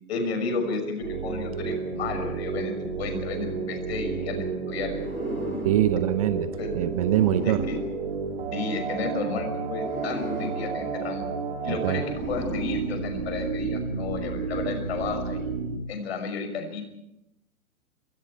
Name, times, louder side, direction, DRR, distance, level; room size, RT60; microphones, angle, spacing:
voice 1, 0.1-5.2 6.6-6.8 7.4-7.8 8.5-11.3 11.6-15.5 15.9-16.8, left 4 dB, 45° left, 6 dB, 6.0 m, -32 dB
sound 1, 1.0-15.8, right 5 dB, 45° right, 3.8 m, -32 dB
sound 2, 4.8-9.0 9.7-13.6, left 1 dB, 90° left, 7.6 m, -38 dB
voice 2, 5.6-7.6 11.7-12.0, right 13 dB, 25° right, 13 dB, 0.7 m, -24 dB
28.0 x 24.5 x 4.5 m, 0.84 s
figure-of-eight pair, 120°, 43 cm